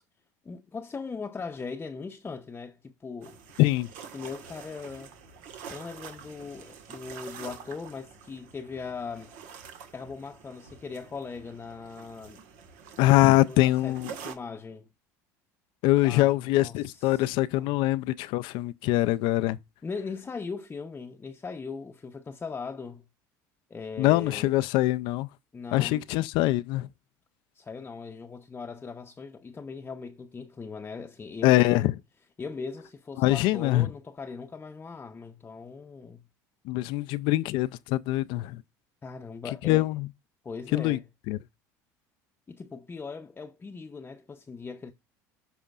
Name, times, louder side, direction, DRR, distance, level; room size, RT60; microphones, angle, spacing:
voice 1, 0.4-3.4 4.1-5.1 5.7-9.3 9.9-12.4 13.5-14.9 16.0-17.3 17.5-17.8 19.8-23.1 23.7-24.5 25.5-26.1 27.5-31.9 32.4-36.2 39.0-39.9 40.4-41.1 42.5-44.9, left 4 dB, 20° left, 0.7 m, -39 dB
sound 1, 3.2-14.3, right 6 dB, 75° right, 1.5 m, -46 dB
voice 2, 13.0-14.1 15.8-19.6 24.0-25.3 25.7-26.9 31.4-31.9 33.2-33.9 36.7-38.6 39.6-40.1 40.7-41.0 41.3-41.4, left 17 dB, 70° left, 0.4 m, -23 dB
13.5 x 5.0 x 2.4 m
supercardioid pair, 85°, 9 cm